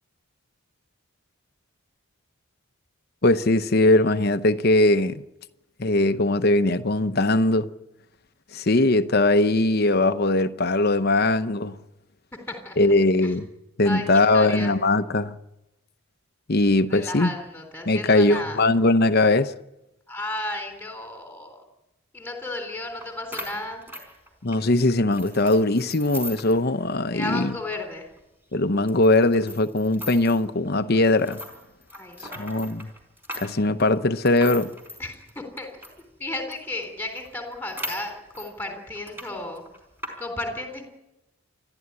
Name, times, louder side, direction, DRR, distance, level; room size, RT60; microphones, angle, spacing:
voice 1, 3.2-5.2 5.8-7.7 8.5-11.8 12.8-13.5 13.8-15.3 16.5-17.3 17.9-19.5 24.4-27.5 28.5-31.4 32.2-32.9 33.4-34.7, left 2 dB, 45° left, 0.8 m, -20 dB
voice 2, 14.3-14.8 16.9-18.6 20.1-21.6 22.1-23.8 27.1-28.1 31.9-32.5 35.0-35.8 36.2-39.6 40.2-40.8, left 2 dB, 10° left, 3.6 m, -33 dB
sound 1, 23.0-23.1 23.3-24.6 25.1-26.6 26.9-27.0 27.4-27.5 28.1-28.2 28.9-30.5 31.0-36.0 36.5-36.6 36.8-36.9 37.2-38.5 38.9-39.3 39.6-40.1, equal, 10° right, 4.7 m, -38 dB
29.0 x 11.5 x 9.7 m
head